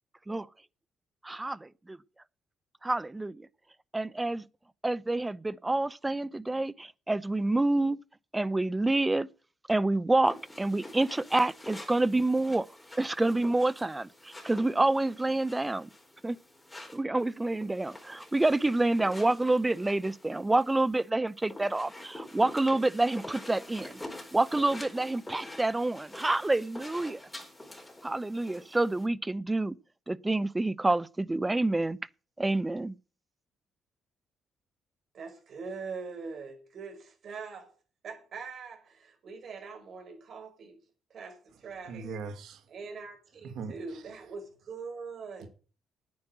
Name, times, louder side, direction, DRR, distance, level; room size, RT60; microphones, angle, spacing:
voice 1, 1.2-2.0 2.8-3.4 3.9-4.4 4.8-8.0 8.3-9.3 9.7-12.7 13.0-15.9 16.2-16.4 16.9-24.0 24.3-27.2 28.0-29.8 30.1-32.0 32.4-32.9, right 2 dB, 15° right, 0.7 m, -28 dB
sound 1, 10.3-29.1, left 1 dB, 10° left, 4.4 m, -47 dB
voice 2, 35.1-37.7 38.0-40.8 41.1-42.1 42.7-45.5, right 4 dB, 60° right, 5.4 m, -42 dB
voice 3, 41.5-42.7 43.4-44.2 45.4-45.5, right 4 dB, 75° right, 2.3 m, -42 dB
9.6 x 9.6 x 7.7 m
cardioid pair, 90°, 0 cm